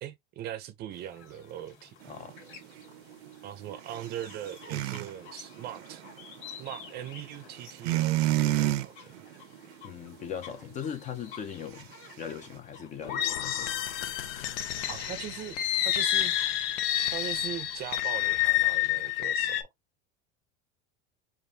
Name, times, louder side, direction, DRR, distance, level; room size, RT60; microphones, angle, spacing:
voice 1, 0.0-1.9 3.4-6.0 6.6-9.1 14.9-15.6 15.8-16.3 17.1-19.7, right 11 dB, 35° right, 0.6 m, -40 dB
sound 1, 0.9-19.4, left 6 dB, 45° left, 3.0 m, -52 dB
sound 2, 2.0-5.1 5.5-6.8 7.7-8.9 9.1-9.7 10.0-10.3, right 15 dB, 90° right, 0.8 m, -29 dB
voice 2, 9.8-11.9 12.2-13.8, left 8 dB, 25° left, 0.5 m, -39 dB
sound 3, 13.0-19.6, left 12 dB, 75° left, 0.9 m, -29 dB
5.1 x 2.6 x 2.7 m
supercardioid pair, 155°, 30 cm